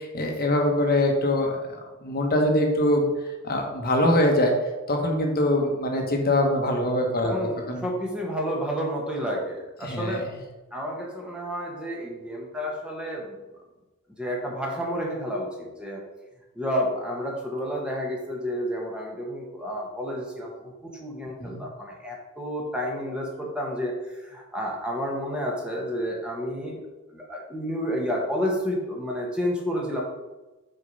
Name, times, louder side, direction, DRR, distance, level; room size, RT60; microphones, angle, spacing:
voice 1, 0.0-1.6 2.0-3.1 3.4-4.5 4.9-7.3 7.7-7.9 9.8-10.2 21.4-21.6, left 1 dB, 45° left, 2 dB, 1.2 m, -23 dB
voice 2, 7.2-10.3 10.7-13.4 14.2-16.0 16.5-26.8 27.1-30.0, equal, 5° right, -2 dB, 1.3 m, -30 dB
6.4 x 4.6 x 5.4 m, 1.1 s
head